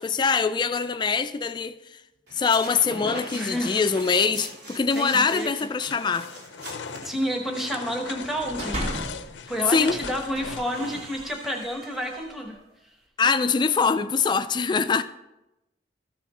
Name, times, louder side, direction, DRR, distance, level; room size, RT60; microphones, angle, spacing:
voice 1, 0.0-1.8 2.3-6.3 9.7-9.9 13.2-15.0, left 5 dB, 25° left, 0.3 m, -23 dB
sound 1, 2.3-7.6, right 1 dB, 75° right, 2.8 m, -40 dB
voice 2, 3.3-3.8 4.9-5.5 7.0-8.8 9.5-12.6, equal, ahead, 0.9 m, -30 dB
sound 2, 5.8-11.2, left 5 dB, 90° left, 0.5 m, -38 dB
sound 3, 8.2-9.3 9.8-12.6, right 1 dB, 40° right, 1.4 m, -37 dB
13.5 x 5.8 x 4.2 m
head